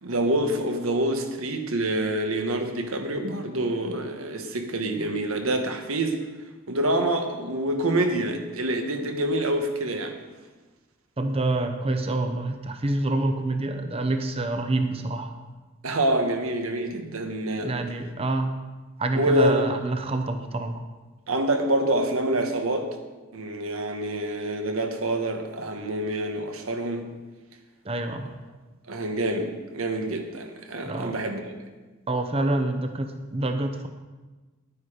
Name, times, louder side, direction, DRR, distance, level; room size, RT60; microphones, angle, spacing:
voice 1, 0.0-6.2 6.7-10.2 15.8-17.7 19.1-19.7 21.3-22.9 23.3-27.1 28.9-31.6, right 1 dB, 90° right, 5 dB, 1.4 m, -26 dB
voice 2, 11.2-15.3 17.6-18.5 19.0-20.8 27.8-28.3 30.8-31.2 32.1-33.9, right 2 dB, 30° right, 6 dB, 0.7 m, -27 dB
11.0 x 9.5 x 5.0 m, 1.2 s
head